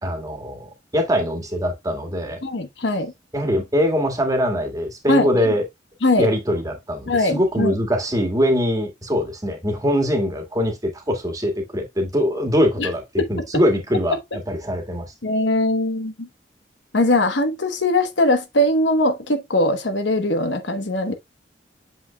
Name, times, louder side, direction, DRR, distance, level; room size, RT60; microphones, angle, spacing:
voice 1, 0.0-2.4 3.3-5.7 6.2-15.1, equal, 20° right, 1.8 m, -22 dB
voice 2, 2.4-3.1 5.1-5.3 6.0-6.3 7.1-7.7 12.8-12.9 13.2-13.4 15.2-16.3 16.9-21.1, left 1 dB, 85° left, 1.1 m, -21 dB
7.5 x 5.7 x 2.2 m
head